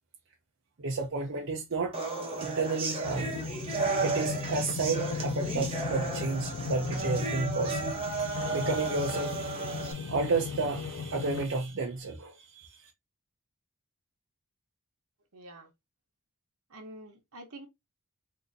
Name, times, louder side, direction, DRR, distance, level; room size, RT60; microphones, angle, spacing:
voice 1, 0.8-2.0 2.4-3.3 4.0-12.9, right 3 dB, 55° right, 0.6 m, -32 dB
sound 1, 1.9-9.9, right 3 dB, 25° right, 0.8 m, -34 dB
sound 2, 3.0-11.5, left 6 dB, 70° left, 0.3 m, -37 dB
voice 2, 15.3-15.7 16.7-17.7, right 1 dB, 75° right, 1.0 m, -47 dB
3.8 x 2.7 x 2.7 m
head